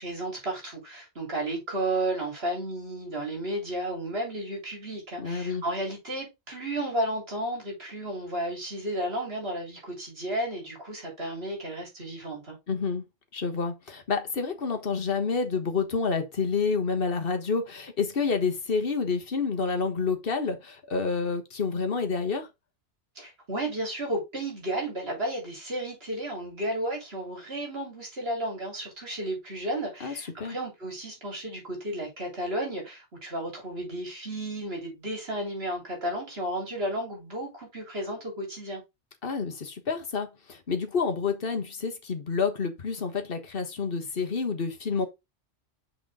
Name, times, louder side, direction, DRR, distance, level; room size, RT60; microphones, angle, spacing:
voice 1, 0.0-12.6 23.2-38.8, right 1 dB, 60° right, 3.7 m, -33 dB
voice 2, 5.2-5.6 12.7-13.0 13.3-22.5 30.0-30.1 30.4-30.6 39.2-45.1, left 5 dB, 55° left, 1.5 m, -29 dB
6.4 x 4.8 x 3.6 m
omnidirectional pair, 1.2 m